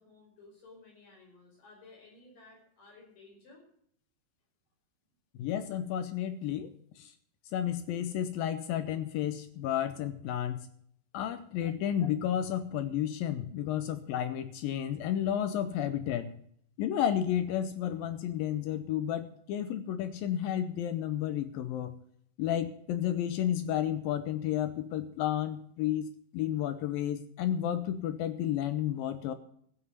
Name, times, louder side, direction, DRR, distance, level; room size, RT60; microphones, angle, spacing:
voice 1, 0.0-3.6, left 3 dB, 60° left, -1 dB, 6.6 m, -56 dB
voice 2, 5.4-7.1 7.5-10.6 11.1-16.3 16.8-21.9 22.4-29.3, left 10 dB, 75° left, 11 dB, 2.3 m, -32 dB
14.0 x 7.9 x 7.9 m, 0.67 s
omnidirectional pair, 4.5 m